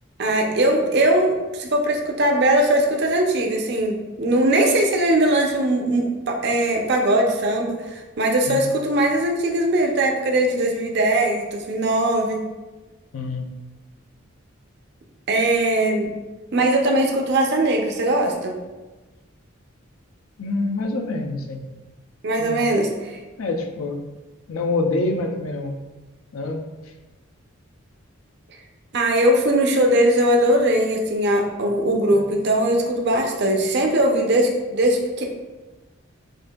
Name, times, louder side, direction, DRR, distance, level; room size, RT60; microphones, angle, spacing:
voice 1, 0.2-12.4 15.3-16.1 16.5-18.6 22.2-23.2 28.9-35.2, right 1 dB, 50° right, 1 dB, 0.5 m, -20 dB
voice 2, 13.1-13.5 20.4-21.6 22.4-22.7 23.4-24.0 24.5-25.8 26.3-26.6 32.1-32.2, left 2 dB, 85° left, 4 dB, 0.5 m, -26 dB
6.3 x 2.6 x 2.2 m, 1.2 s
head